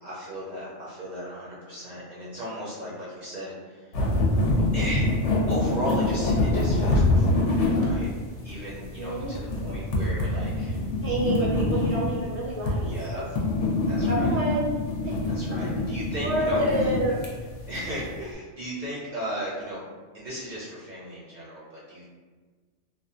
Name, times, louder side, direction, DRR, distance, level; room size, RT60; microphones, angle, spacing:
voice 1, 0.0-4.2 4.7-5.1 5.5-8.1 8.4-10.8 12.9-13.2 13.9-14.3 15.2-16.9 17.7-19.8 20.1-22.1, equal, 50° right, -7 dB, 0.6 m, -35 dB
sound 1, 3.9-18.2, left 2 dB, 75° left, 0.9 m, -26 dB
voice 2, 8.7-9.3 11.0-12.9 14.1-14.7 15.0-15.1 16.2-17.2, right 1 dB, 20° left, -8 dB, 0.3 m, -28 dB
2.6 x 2.2 x 2.5 m, 1.4 s
omnidirectional pair, 1.2 m